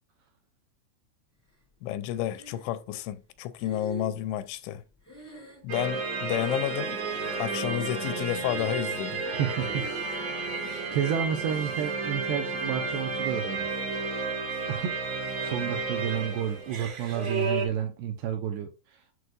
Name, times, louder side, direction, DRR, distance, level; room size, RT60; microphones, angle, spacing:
voice 1, 1.8-4.8 5.6-7.0 7.4-9.3, left 12 dB, 85° left, 2.8 m, -31 dB
Breathing, 2.3-3.0 3.6-6.0 6.3-7.1 7.5-8.1 8.4-9.0 9.6-10.1, right 2 dB, 15° right, 0.7 m, -45 dB
sound 1, 5.7-17.7, right 4 dB, 55° right, 1.8 m, -32 dB
voice 2, 9.3-9.9 10.4-13.7 14.7-14.9 15.4-19.2, right 9 dB, 80° right, 2.4 m, -31 dB
8.1 x 6.4 x 2.4 m
omnidirectional pair, 5.4 m